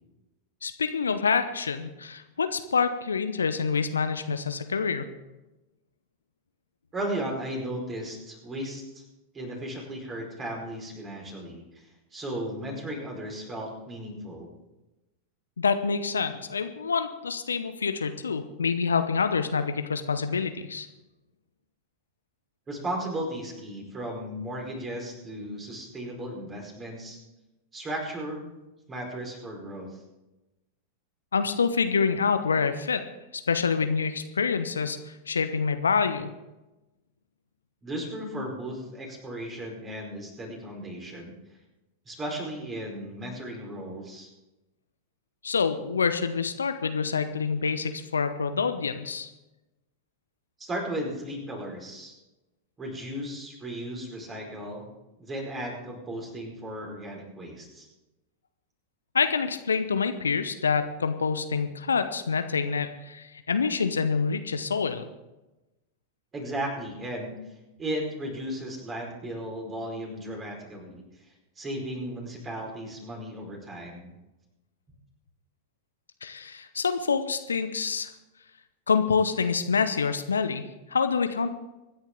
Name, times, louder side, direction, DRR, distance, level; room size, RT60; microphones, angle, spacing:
voice 1, 0.6-5.0 15.6-20.9 31.3-33.1 33.3-36.3 45.4-49.3 59.1-65.0 76.2-78.1 78.9-81.5, left 5 dB, 70° left, 10 dB, 0.8 m, -27 dB
voice 2, 6.9-9.0 9.3-14.5 22.7-27.2 27.7-28.5 28.9-30.0 37.8-41.3 42.0-44.3 50.6-52.2 52.8-54.9 55.2-57.9 66.3-67.3 67.8-71.2 71.6-74.1, right 1 dB, 20° right, 0 dB, 4.8 m, -35 dB
24.0 x 10.5 x 3.8 m, 1.0 s
figure-of-eight pair, 90°, 0 cm